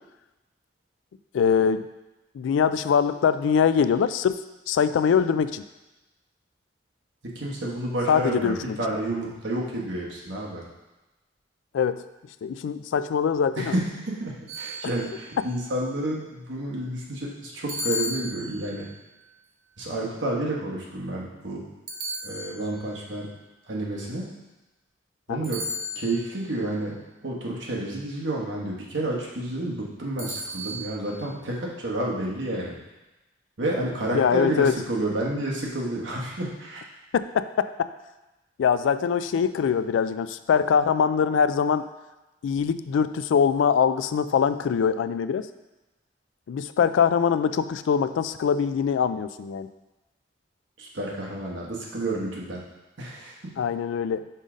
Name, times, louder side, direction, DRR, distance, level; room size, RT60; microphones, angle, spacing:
voice 1, 1.3-1.9 2.3-4.4 4.7-5.6 8.1-8.8 11.7-12.0 12.4-13.7 25.3-25.4 34.1-34.7 37.1-37.9 38.6-41.9 42.4-45.5 46.5-49.7 53.6-54.2, left 7 dB, 85° left, 13 dB, 0.3 m, -23 dB
voice 2, 7.2-10.6 13.6-18.9 19.8-21.6 22.2-23.3 23.7-24.3 25.3-25.6 25.9-26.9 27.2-32.8 33.6-36.9 50.8-52.6 53.0-53.6, right 1 dB, 80° right, -3 dB, 1.3 m, -30 dB
sound 1, 14.5-15.4 17.7-18.9 21.9-22.9 25.4-26.4 30.2-31.0, left 1 dB, 60° right, 0.8 m, -34 dB
5.4 x 3.8 x 5.0 m, 1.1 s
head